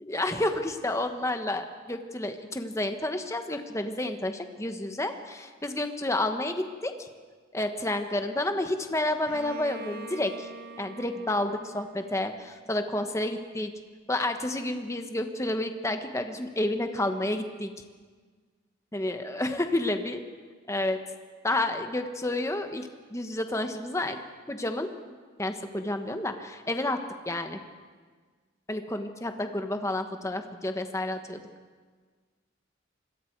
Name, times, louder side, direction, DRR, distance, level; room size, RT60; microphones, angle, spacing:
voice 1, 0.1-7.1 7.5-10.5 10.8-13.7 14.1-17.7 18.9-20.2 20.7-21.0 21.4-24.2 24.5-27.0 27.3-27.6 28.7-31.4, left 1 dB, 15° left, 6 dB, 1.2 m, -30 dB
Bowed string instrument, 9.3-13.0, right 3 dB, 50° right, 0.8 m, -45 dB
26.0 x 21.5 x 4.7 m, 1.5 s
head